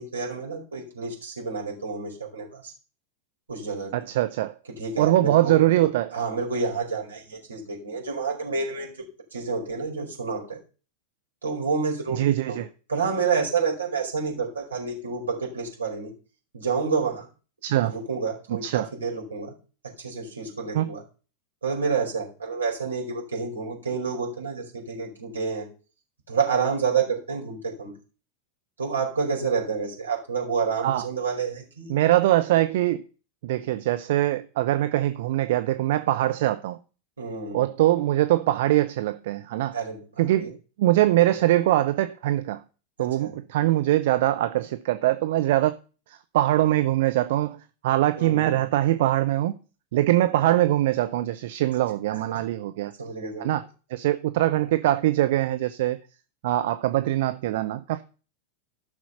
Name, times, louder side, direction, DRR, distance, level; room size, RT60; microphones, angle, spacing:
voice 1, 0.0-2.7 3.5-3.9 4.7-5.5 6.1-8.9 9.3-10.6 11.4-12.2 12.5-12.6 12.9-16.1 16.5-17.3 17.8-19.5 19.8-21.0 21.6-25.7 26.3-27.9 28.8-31.9 37.2-37.6 39.7-40.1 40.4-40.5 43.0-43.4 48.2-48.6 52.1-52.4 53.0-53.5 54.6-54.7, right 5 dB, 75° right, 4.9 m, -29 dB
voice 2, 3.9-4.5 5.0-6.1 12.1-12.7 17.6-17.9 18.5-18.8 20.7-20.9 30.8-31.1 31.9-33.0 33.4-36.8 37.5-39.8 40.2-42.6 43.0-45.7 46.1-47.6 47.8-49.6 49.9-52.9 53.4-53.6 53.9-56.0 56.4-58.0, right 14 dB, 55° right, 0.7 m, -22 dB
14.5 x 6.2 x 5.7 m
figure-of-eight pair, 90°, 0 cm